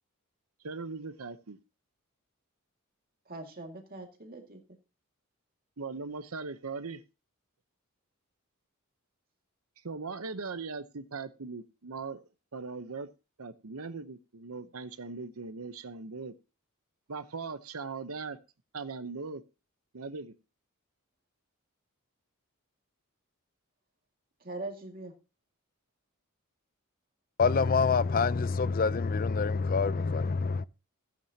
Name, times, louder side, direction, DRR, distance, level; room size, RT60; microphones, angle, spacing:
voice 1, 0.6-1.6 5.8-7.0 9.8-12.2 12.5-13.1 13.4-16.3 17.1-18.4 18.7-19.4 19.9-20.3, right 4 dB, 75° right, 0.9 m, -39 dB
voice 2, 3.3-4.6 24.4-25.1, right 2 dB, 40° right, 2.2 m, -41 dB
voice 3, 27.4-30.6, left 5 dB, 40° left, 0.5 m, -26 dB
15.0 x 9.1 x 2.8 m
head